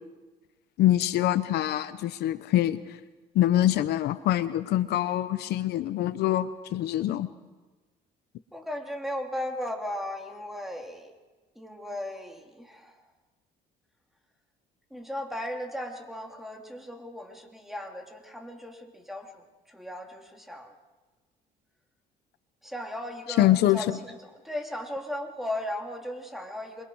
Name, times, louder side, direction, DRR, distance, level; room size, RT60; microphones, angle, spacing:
voice 1, 0.8-2.8 3.3-7.3 23.4-23.8, left 13 dB, 75° left, 13 dB, 0.8 m, -24 dB
voice 2, 8.5-11.1 11.5-13.0 14.9-20.7 22.6-26.8, left 1 dB, ahead, 2 dB, 3.0 m, -36 dB
27.5 x 23.0 x 4.7 m, 1.3 s
cardioid pair, 110°, 17 cm